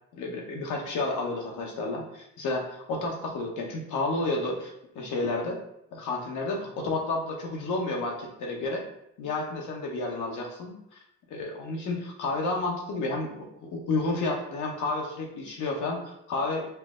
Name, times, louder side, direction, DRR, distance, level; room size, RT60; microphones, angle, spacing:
voice 1, 0.1-5.6 5.9-8.8 9.2-11.0 11.3-16.7, left 2 dB, 80° left, 0 dB, 0.9 m, -31 dB
4.5 x 2.0 x 3.6 m, 0.79 s
cardioid pair, 90°, 30 cm